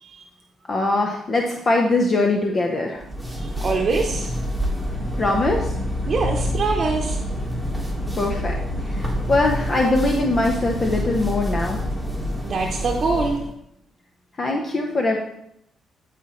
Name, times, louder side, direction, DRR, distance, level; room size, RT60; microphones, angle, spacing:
voice 1, 0.7-3.0 5.2-5.7 8.1-11.8 14.4-15.2, left 2 dB, 40° left, 1 dB, 0.8 m, -22 dB
sound 1, 3.0-13.5, equal, 5° left, 1.6 m, -27 dB
voice 2, 3.4-4.4 6.1-7.2 12.4-13.4, right 4 dB, 45° right, 0 dB, 0.8 m, -24 dB
12.5 x 4.2 x 3.1 m, 0.77 s
cardioid pair, 90°, 0 cm